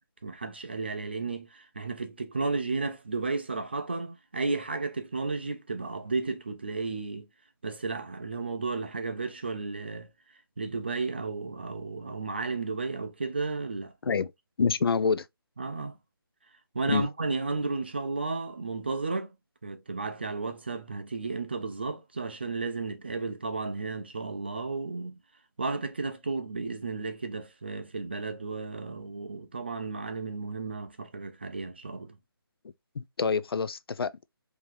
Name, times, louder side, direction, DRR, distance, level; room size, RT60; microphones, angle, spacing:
voice 1, 0.2-7.3 7.6-10.1 10.6-13.9 15.6-16.0 16.7-19.3 19.6-25.2 25.6-32.2, right 3 dB, 25° right, 0.4 m, -33 dB
voice 2, 14.6-15.3 16.9-17.1 33.0-34.1, left 5 dB, 75° left, 0.4 m, -26 dB
3.8 x 2.8 x 3.0 m
hypercardioid pair, 175°, 13 cm